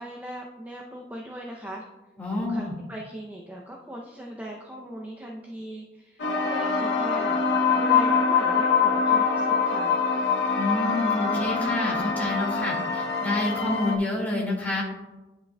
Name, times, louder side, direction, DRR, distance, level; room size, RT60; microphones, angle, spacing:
voice 1, 0.0-1.8 2.5-6.2 6.5-7.4 7.7-10.0, equal, 10° right, -2 dB, 0.5 m, -38 dB
voice 2, 2.2-2.7 10.5-14.8, left 1 dB, 10° left, -4 dB, 2.0 m, -28 dB
sound 1, 6.2-14.0, left 5 dB, 75° left, 0.8 m, -24 dB
10.0 x 5.7 x 2.2 m, 1.1 s
head